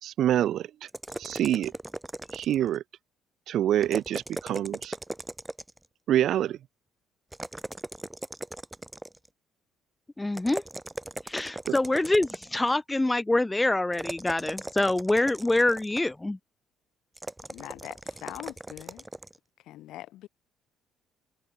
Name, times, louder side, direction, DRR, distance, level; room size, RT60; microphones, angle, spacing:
voice 1, 0.0-0.7 1.2-1.7 2.3-2.8 3.5-5.0 6.1-6.6, right 11 dB, 55° right, 3.7 m, -26 dB
sound 1, 0.9-2.8 3.8-5.9 7.3-9.3 10.3-12.7 13.9-16.2 17.2-19.4, right 1 dB, 10° right, 3.6 m, -39 dB
voice 2, 10.2-10.6 11.2-16.4, left 2 dB, 10° left, 1.5 m, -25 dB
voice 3, 17.5-19.1 19.6-20.3, left 15 dB, 70° left, 6.6 m, -42 dB
cardioid pair, 145°, 0 cm